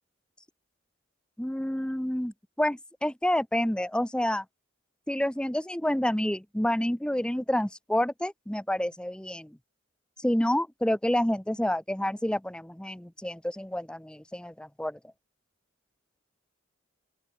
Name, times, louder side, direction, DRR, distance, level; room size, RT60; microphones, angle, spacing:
voice 1, 1.4-4.4 5.1-9.6 10.2-15.0, left 1 dB, 5° left, 0.6 m, -29 dB
open air
head